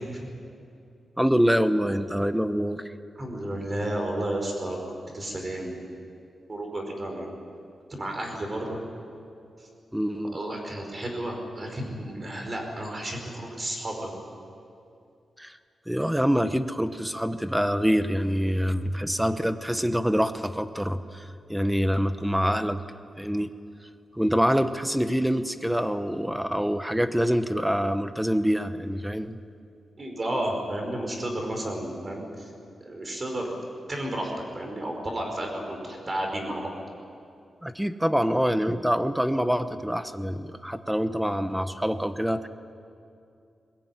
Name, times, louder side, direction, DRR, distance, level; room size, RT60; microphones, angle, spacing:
voice 1, 1.2-2.8 9.9-10.4 15.4-15.6 15.9-22.8 23.2-23.5 24.1-29.4 37.6-42.5, equal, 5° right, 10 dB, 1.0 m, -25 dB
voice 2, 3.2-4.8 5.1-6.0 6.5-7.3 7.9-8.8 10.2-14.2 30.0-32.5 32.8-33.6 33.9-36.7, right 1 dB, 30° right, 2 dB, 5.2 m, -32 dB
21.5 x 21.0 x 9.6 m, 2.5 s
wide cardioid pair, 140°, 0 cm